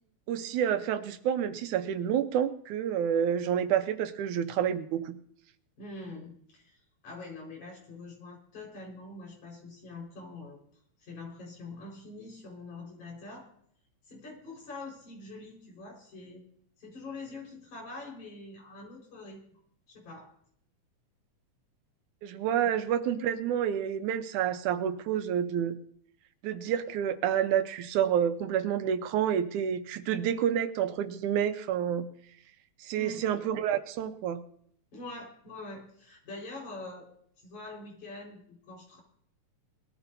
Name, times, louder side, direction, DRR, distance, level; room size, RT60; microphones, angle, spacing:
voice 1, 0.3-5.2 22.2-25.8 26.4-32.1 32.8-34.4, right 9 dB, 85° right, 9 dB, 2.3 m, -29 dB
voice 2, 5.8-10.6 11.0-13.5 14.1-16.4 16.8-19.4 19.9-20.3 33.0-33.2 34.9-37.1 37.4-39.0, left 2 dB, 75° left, -2 dB, 6.2 m, -44 dB
21.0 x 13.5 x 2.7 m, 0.66 s
omnidirectional pair, 3.4 m